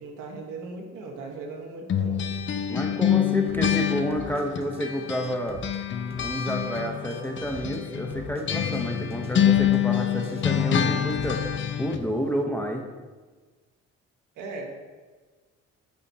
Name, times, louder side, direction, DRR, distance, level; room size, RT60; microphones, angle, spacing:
voice 1, 0.0-2.2 14.4-14.7, right 3 dB, 85° right, 0 dB, 1.3 m, -38 dB
sound 1, 1.9-5.4 5.6-12.0, left 10 dB, 40° left, 0.4 m, -26 dB
voice 2, 2.7-5.6 6.2-11.5 11.8-12.8, equal, 5° left, 2 dB, 0.7 m, -29 dB
sound 2, 3.5-3.8 4.1-4.8 5.1-5.8 6.1-6.8 7.1-7.8 8.1-8.8 9.1-9.8 10.1-11.5, right 1 dB, 20° right, 1.0 m, -43 dB
8.6 x 4.3 x 2.8 m, 1.4 s
cardioid pair, 90°, 30 cm